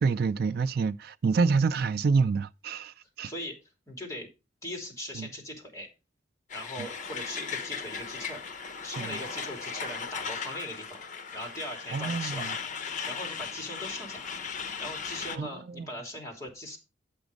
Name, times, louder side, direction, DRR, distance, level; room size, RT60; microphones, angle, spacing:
voice 1, 0.0-3.3 5.1-5.3 6.8-6.9 9.0-9.2 11.9-12.5 13.0-13.1 15.3-15.5 15.8-15.9, right 4 dB, 55° right, 0.4 m, -27 dB
voice 2, 3.2-3.6 3.9-4.3 4.6-5.9 6.5-8.4 8.8-11.0 11.3-12.5 13.1-14.2 14.8-16.8, left 1 dB, 15° left, 3.0 m, -40 dB
Truck, 6.5-15.4, left 6 dB, 40° left, 0.9 m, -37 dB
8.8 x 6.0 x 5.2 m
head